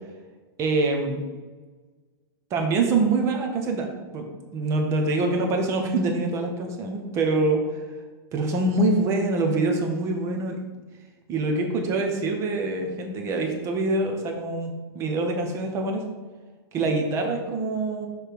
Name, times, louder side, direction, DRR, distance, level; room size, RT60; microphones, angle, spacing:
voice 1, 0.6-1.2 2.5-3.9 4.1-7.7 8.3-10.6 11.3-16.0 16.7-18.1, right 2 dB, 20° right, 2 dB, 0.7 m, -25 dB
6.7 x 3.2 x 4.5 m, 1.4 s
supercardioid pair, 165°, 13 cm